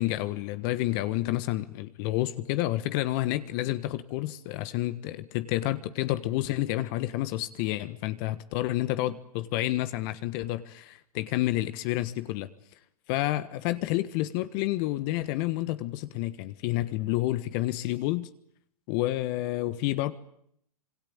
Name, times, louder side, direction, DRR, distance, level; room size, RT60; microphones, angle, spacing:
voice 1, 0.0-12.5 13.1-18.3 18.9-20.1, left 16 dB, 40° left, 1.5 m, -29 dB
26.5 x 24.5 x 8.9 m
hypercardioid pair, 130°, 19 cm